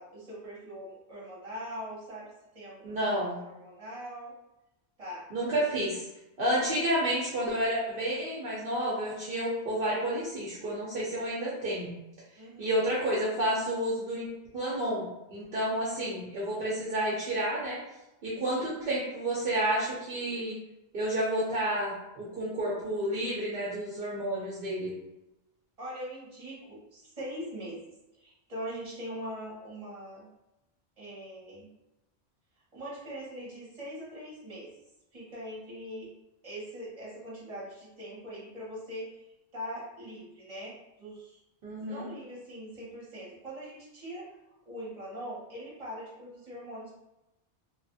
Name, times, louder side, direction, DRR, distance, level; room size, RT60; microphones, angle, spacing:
voice 1, 0.0-2.9 3.4-4.3 5.0-5.2 5.5-5.7 12.4-12.8 15.5-16.0 18.5-18.7 25.8-27.8 28.2-30.3 31.0-31.7 32.7-34.7 35.1-36.1 36.4-39.2 39.5-41.4 41.8-44.3 44.7-46.9, equal, 35° right, -6 dB, 1.2 m, -42 dB
voice 2, 2.8-3.4 5.3-6.0 6.4-11.9 12.6-14.3 14.5-17.8 18.2-20.6 20.9-24.9 41.6-42.1, right 1 dB, 65° right, -6 dB, 0.8 m, -30 dB
2.9 x 2.4 x 2.6 m, 0.94 s
omnidirectional pair, 1.0 m